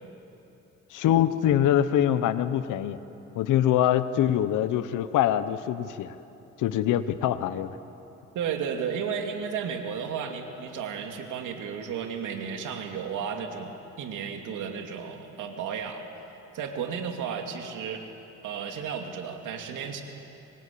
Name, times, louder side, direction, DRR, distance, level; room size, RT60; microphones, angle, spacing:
voice 1, 0.9-3.0 3.3-6.1 6.6-7.8, left 11 dB, 90° left, 12 dB, 1.1 m, -24 dB
voice 2, 8.3-16.0 16.5-18.1 18.4-20.0, right 7 dB, 85° right, 4 dB, 2.7 m, -33 dB
26.0 x 21.5 x 8.7 m, 3.0 s
cardioid pair, 90°, 30 cm